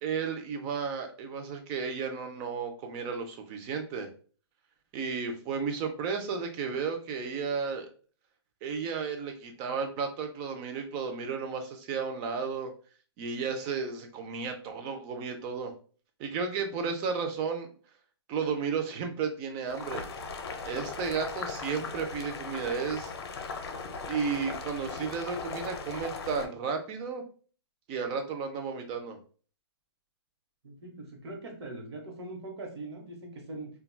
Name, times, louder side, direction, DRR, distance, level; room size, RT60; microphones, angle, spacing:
voice 1, 0.0-4.1 4.9-7.9 8.6-12.7 13.2-15.7 16.2-17.7 18.3-20.1 20.6-23.1 24.0-27.2 27.9-29.2, right 5 dB, 25° right, 5 dB, 0.4 m, -33 dB
Boiling, 19.7-26.5, left 4 dB, 65° left, 0.6 m, -38 dB
voice 2, 30.6-33.7, right 2 dB, 70° right, 1 dB, 1.0 m, -41 dB
3.1 x 2.3 x 2.2 m, 0.40 s
hypercardioid pair, 145°, 14 cm